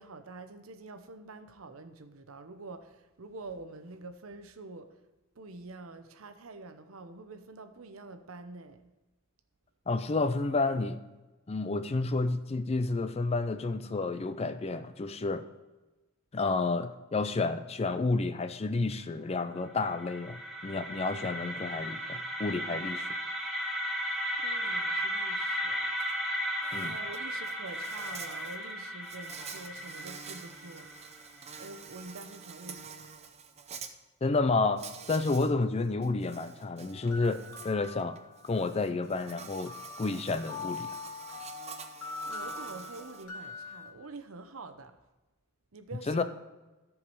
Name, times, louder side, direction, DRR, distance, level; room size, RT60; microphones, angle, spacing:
voice 1, 0.0-5.0 5.4-8.8 24.4-25.9 26.8-30.9 31.6-33.1 42.2-44.9 45.7-46.2, right 3 dB, 75° right, 9 dB, 0.8 m, -46 dB
voice 2, 9.9-11.0 11.5-15.4 16.3-23.1 26.7-27.0 34.2-38.2 38.4-41.0 46.1-46.2, left 3 dB, 30° left, 11 dB, 0.4 m, -30 dB
sound 1, 19.5-31.5, equal, ahead, 1.5 m, -35 dB
Insect, 26.0-26.1 26.4-33.9 34.8-35.5 35.8-43.2, right 6 dB, 30° right, 0.6 m, -47 dB
sound 2, 36.8-38.7 39.7-43.9, left 4 dB, 80° left, 2.2 m, -43 dB
14.0 x 4.8 x 5.4 m, 1.1 s
head